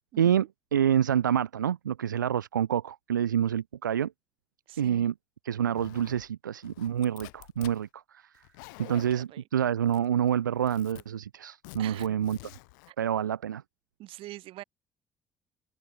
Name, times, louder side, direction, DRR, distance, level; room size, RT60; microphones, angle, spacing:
voice 1, 0.1-0.5 4.7-5.1 8.8-9.4 11.8-12.2 12.9-13.0 13.2-13.3 14.0-14.6, right 16 dB, 65° right, 6.1 m, -45 dB
voice 2, 0.7-4.1 4.8-5.1 5.4-8.3 8.8-12.4 13.0-13.6, right 9 dB, 85° right, 0.6 m, -27 dB
Zipper (clothing), 5.7-6.3 6.6-7.8 8.3-9.2 9.9-10.3 10.6-11.0 11.6-12.9, left 27 dB, 75° left, 2.5 m, -48 dB
figure-of-eight pair, 50°, 10 cm